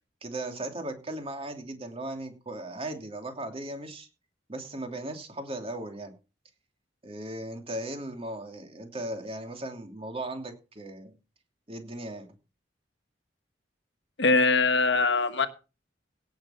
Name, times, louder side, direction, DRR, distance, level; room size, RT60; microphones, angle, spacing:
voice 1, 0.2-4.1 4.5-6.1 7.0-11.2 11.7-12.3, right 1 dB, 35° right, 4 dB, 2.9 m, -37 dB
voice 2, 14.2-15.5, left 3 dB, 70° left, 9 dB, 1.3 m, -22 dB
17.0 x 6.7 x 5.7 m, 0.33 s
head